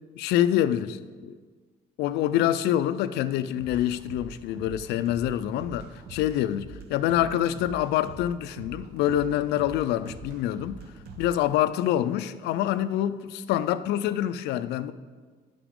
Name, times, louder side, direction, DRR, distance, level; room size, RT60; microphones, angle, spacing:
voice 1, 0.1-1.0 2.0-10.8 11.2-14.9, left 12 dB, 80° left, 0.4 m, -26 dB
sound 1, 3.6-11.4, right 4 dB, 75° right, 0.9 m, -44 dB
10.0 x 7.0 x 3.7 m
cardioid pair, 110°, 17 cm